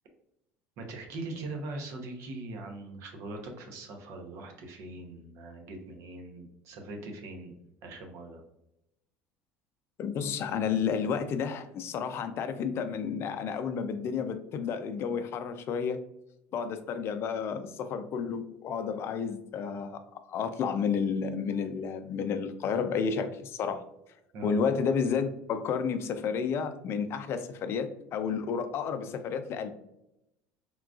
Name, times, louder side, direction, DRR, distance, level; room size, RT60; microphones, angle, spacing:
voice 1, 0.8-7.5 7.8-8.4 24.3-24.5, right 2 dB, 65° right, 3 dB, 0.8 m, -41 dB
voice 2, 10.0-16.0 16.5-23.8 24.4-29.7, left 6 dB, 50° left, 9 dB, 0.4 m, -31 dB
3.7 x 2.3 x 2.3 m, 0.83 s
supercardioid pair, 95°, 5 cm